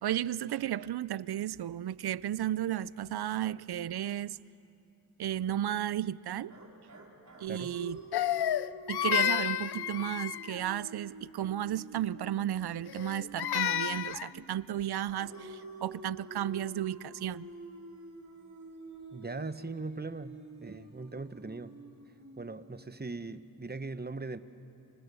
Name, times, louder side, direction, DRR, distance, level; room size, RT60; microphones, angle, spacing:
voice 1, 0.0-4.4 5.2-6.5 7.4-8.0 8.9-17.5, right 11 dB, 80° right, 20 dB, 0.6 m, -34 dB
sound 1, 6.5-14.5 15.1-23.2, right 2 dB, 45° right, 5.0 m, -49 dB
Crying sobbing, 8.1-10.6 12.9-14.3, left 11 dB, 80° left, 0.6 m, -31 dB
voice 2, 19.1-21.7 22.4-24.4, right 3 dB, 25° right, 12 dB, 1.2 m, -40 dB
29.5 x 28.0 x 7.0 m, 2.9 s
cardioid pair, 45°, 38 cm